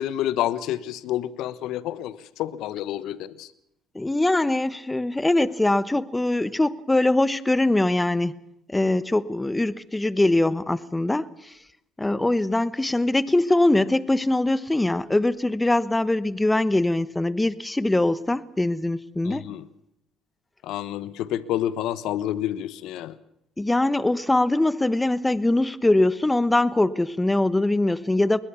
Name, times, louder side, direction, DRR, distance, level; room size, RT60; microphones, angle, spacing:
voice 1, 0.0-3.5 19.2-19.7 20.6-23.2, left 12 dB, 70° left, 1.2 m, -29 dB
voice 2, 3.9-8.4 8.7-11.5 12.0-19.4 23.6-28.4, left 2 dB, 15° left, 1.1 m, -22 dB
21.5 x 21.0 x 7.1 m
supercardioid pair, 65°, 0 cm